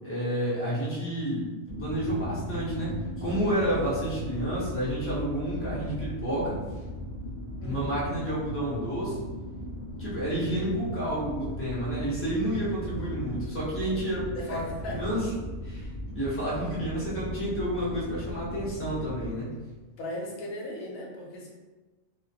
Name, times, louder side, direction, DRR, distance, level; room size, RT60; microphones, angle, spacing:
voice 1, 0.0-6.6 7.6-9.2 10.0-14.6 14.9-15.2 15.6-15.9 16.1-19.5, right 1 dB, 15° left, -8 dB, 0.5 m, -30 dB
sound 1, 1.7-19.4, equal, 50° right, 0.5 m, -37 dB
voice 2, 7.6-8.0 12.9-13.2 14.3-15.0 16.5-16.6 20.0-21.5, left 1 dB, 80° left, -2 dB, 1.1 m, -38 dB
2.4 x 2.1 x 2.6 m, 1.2 s
omnidirectional pair, 1.4 m